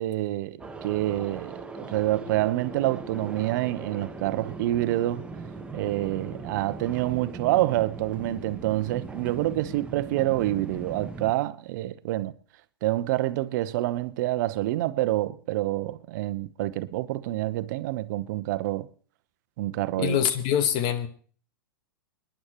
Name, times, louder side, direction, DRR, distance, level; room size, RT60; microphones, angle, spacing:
voice 1, 0.0-5.2 5.7-12.3 12.8-18.9 19.6-20.2, right 16 dB, 55° right, 0.9 m, -27 dB
sound 1, 0.6-11.3, right 3 dB, 10° right, 1.2 m, -40 dB
voice 2, 20.0-21.1, left 10 dB, 40° left, 1.5 m, -24 dB
29.5 x 10.5 x 3.1 m
hypercardioid pair, 110°, 12 cm